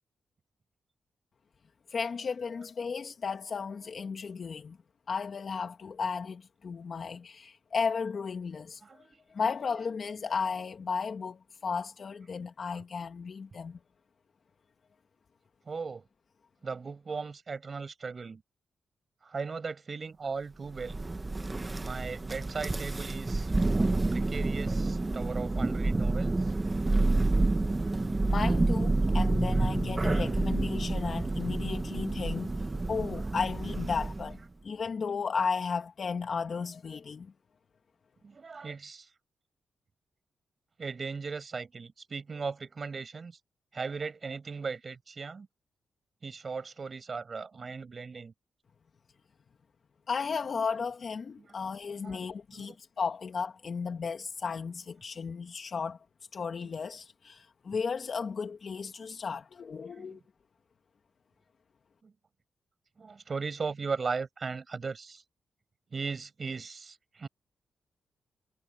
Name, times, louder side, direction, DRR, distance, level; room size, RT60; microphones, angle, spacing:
voice 1, 1.9-4.8 5.1-9.0 9.3-13.8 28.3-34.4 34.6-37.3 50.1-56.0 56.3-60.2, left 5 dB, 55° left, 1.8 m, -34 dB
voice 2, 8.8-9.2 15.7-16.0 16.6-18.4 19.2-21.0 21.8-23.5 24.1-26.5 29.5-29.8 38.2-39.1 40.8-43.4 43.7-45.5 46.2-48.3 51.5-51.6 52.0-52.2 52.5-52.7 59.9-60.2 62.0-62.1 63.0-65.2 65.9-67.3, right 4 dB, 45° right, 6.1 m, -38 dB
Thunder, 20.7-34.4, right 2 dB, 25° right, 1.6 m, -29 dB
cardioid pair, 65°, 0 cm